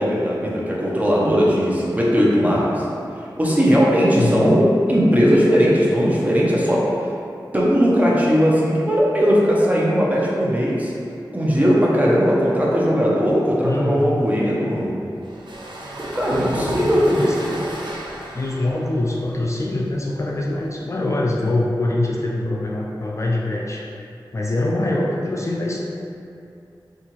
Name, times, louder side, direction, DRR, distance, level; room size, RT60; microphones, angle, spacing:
voice 1, 0.0-2.9 3.4-6.9 7.5-10.9 11.3-14.9 16.1-17.2, equal, 20° right, -5 dB, 0.7 m, -18 dB
voice 2, 4.2-4.5 13.6-14.2 16.3-17.6 18.3-24.0 24.3-25.8, left 2 dB, 40° left, -2 dB, 0.3 m, -24 dB
sound 1, 15.2-20.7, right 1 dB, 85° right, 0.4 m, -33 dB
3.7 x 2.4 x 3.0 m, 2.5 s
wide cardioid pair, 55°, 8 cm